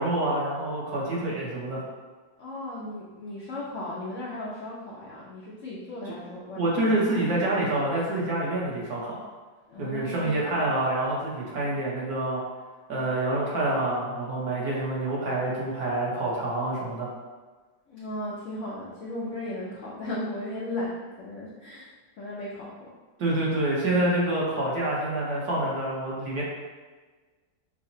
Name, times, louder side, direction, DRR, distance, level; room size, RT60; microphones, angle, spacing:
voice 1, 0.0-1.8 6.0-6.1 6.5-9.2 9.8-12.4 12.9-17.1 23.2-26.4, right 1 dB, 60° right, -5 dB, 1.2 m, -27 dB
voice 2, 2.4-6.7 9.7-10.4 17.9-20.9 21.2-21.9 22.2-22.9, left 1 dB, 80° left, -6 dB, 0.6 m, -36 dB
5.7 x 2.0 x 2.6 m, 1.4 s
omnidirectional pair, 2.0 m